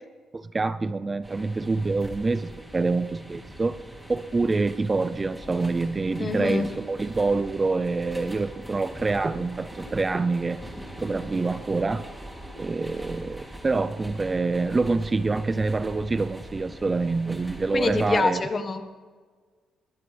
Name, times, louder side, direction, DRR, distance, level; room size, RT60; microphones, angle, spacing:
voice 1, 0.3-3.8 4.1-10.6 11.0-12.1 12.6-18.4, right 3 dB, 25° right, 13 dB, 0.5 m, -26 dB
sound 1, 1.2-18.2, equal, 5° right, 2.9 m, -42 dB
voice 2, 6.2-6.7 17.7-18.8, left 3 dB, 35° left, 8 dB, 1.5 m, -25 dB
21.5 x 15.0 x 3.4 m, 1.5 s
cardioid pair, 90°, 0 cm